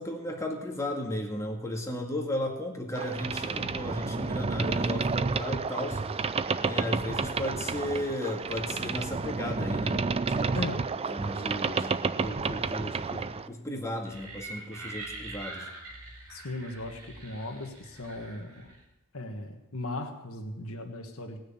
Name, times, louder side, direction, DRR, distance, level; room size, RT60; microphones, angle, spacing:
voice 1, 0.0-6.0 6.6-10.7 11.1-15.7, left 1 dB, 15° left, 1 dB, 2.0 m, -35 dB
Boat Water vehicle, 2.9-13.5, right 4 dB, 25° right, 0.4 m, -30 dB
voice 2, 10.5-10.9 16.3-18.7 19.1-21.4, left 2 dB, 65° left, 4 dB, 1.6 m, -37 dB
sound 1, 14.0-18.9, right 2 dB, 65° right, 5.1 m, -44 dB
18.5 x 6.4 x 8.7 m, 0.99 s
head